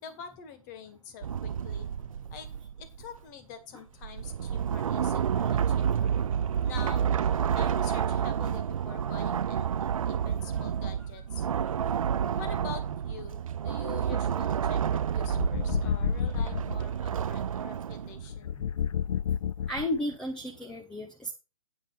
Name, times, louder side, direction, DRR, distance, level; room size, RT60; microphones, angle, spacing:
voice 1, 0.0-1.9 2.3-2.5 2.8-6.1 6.6-11.5 12.4-18.5, left 7 dB, 35° left, 10 dB, 2.0 m, -46 dB
sound 1, 1.2-3.2 4.0-18.3, right 8 dB, 70° right, 0.4 m, -29 dB
sound 2, 15.2-16.8 18.3-20.1, left 8 dB, 65° left, 0.4 m, -30 dB
voice 2, 19.7-21.3, left 1 dB, 5° left, 2 dB, 1.0 m, -33 dB
9.3 x 5.2 x 6.0 m, 0.29 s
hypercardioid pair, 135°, 18 cm